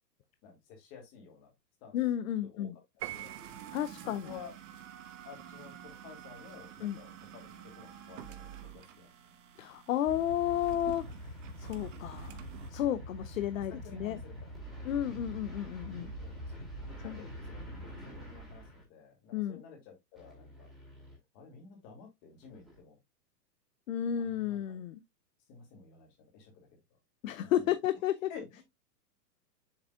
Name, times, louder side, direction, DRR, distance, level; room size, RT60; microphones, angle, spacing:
voice 1, 0.4-1.5 1.8-2.0 2.4-2.7 3.1-3.4 4.0-4.5 5.2-9.3 13.8-14.5 16.2-16.5 16.9-17.9 18.2-20.7 21.3-23.0 24.1-24.8 25.5-26.7 27.4-27.7 28.3-28.6, left 6 dB, 25° left, 2.7 m, -52 dB
voice 2, 1.9-2.7 3.7-4.3 6.8-7.0 9.6-11.3 11.6-12.4 12.7-14.2 14.8-16.1 17.0-17.2 19.3-19.6 23.9-25.0 27.2-28.3, left 11 dB, 55° left, 0.6 m, -32 dB
sound 1, 3.0-12.7, right 9 dB, 45° right, 1.2 m, -49 dB
Piano, 3.0-3.9, right 13 dB, 70° right, 0.8 m, -42 dB
sound 2, 10.0-18.8 20.2-21.2 22.4-22.8, equal, ahead, 2.3 m, -45 dB
7.3 x 6.2 x 2.3 m
supercardioid pair, 170°, 50 cm